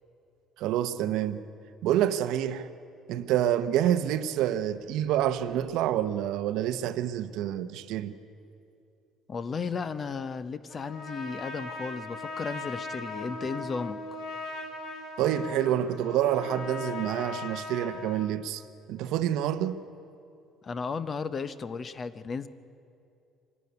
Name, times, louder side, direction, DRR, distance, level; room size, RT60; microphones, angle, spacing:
voice 1, 0.6-1.4 1.8-2.7 3.1-8.1 15.2-18.6 18.9-19.8, right 11 dB, 75° right, 0.8 m, -27 dB
voice 2, 9.3-14.2 20.6-22.5, left 5 dB, 30° left, 0.6 m, -34 dB
Trumpet, 10.7-18.3, left 2 dB, 60° left, 2.9 m, -39 dB
25.0 x 12.0 x 9.5 m
cardioid pair, 155°, 0 cm